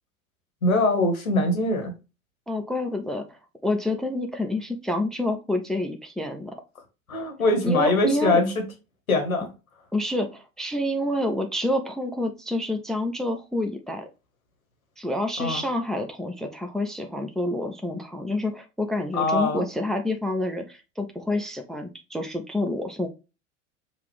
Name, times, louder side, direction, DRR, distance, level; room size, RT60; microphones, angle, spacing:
voice 1, 0.6-1.9 7.1-8.6 9.1-9.5 15.4-15.6 19.1-19.6, left 2 dB, 85° left, 1.3 m, -22 dB
voice 2, 2.5-6.5 7.6-8.4 9.9-14.1 15.0-23.1, left 1 dB, ahead, 0.4 m, -28 dB
5.7 x 2.4 x 3.3 m
figure-of-eight pair, 85°, 41 cm